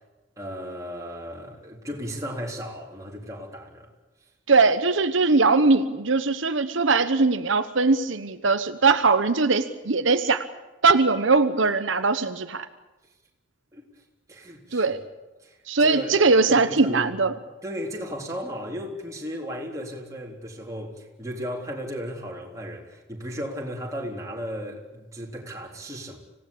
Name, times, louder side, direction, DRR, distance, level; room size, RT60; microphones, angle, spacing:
voice 1, 0.4-3.9 13.7-13.9 14.3-14.9 15.4-16.2 16.5-17.2 17.6-26.2, equal, 15° right, 3.8 m, -35 dB
voice 2, 4.5-10.5 10.8-12.7 14.7-15.0 15.7-17.3, right 3 dB, 80° right, 1.1 m, -21 dB
26.0 x 17.0 x 8.6 m
head